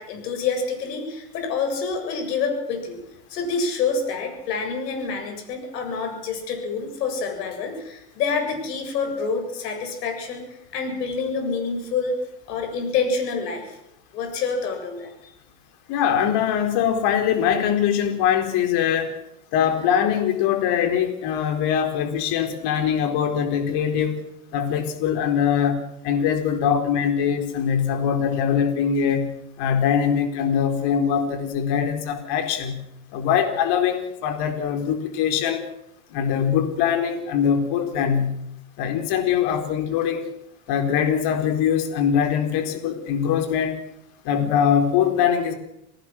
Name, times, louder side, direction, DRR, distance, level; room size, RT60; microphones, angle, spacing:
voice 1, 0.0-3.0 3.3-12.2 12.5-13.8 14.1-15.3, left 4 dB, 90° left, 4 dB, 7.7 m, -27 dB
voice 2, 15.9-19.2 19.5-24.2 24.5-29.3 29.6-32.8 33.1-35.6 36.1-38.4 38.8-40.3 40.7-43.8 44.2-45.5, left 8 dB, 55° left, 6 dB, 4.3 m, -22 dB
28.0 x 18.5 x 6.2 m, 0.82 s
supercardioid pair, 120°, 47 cm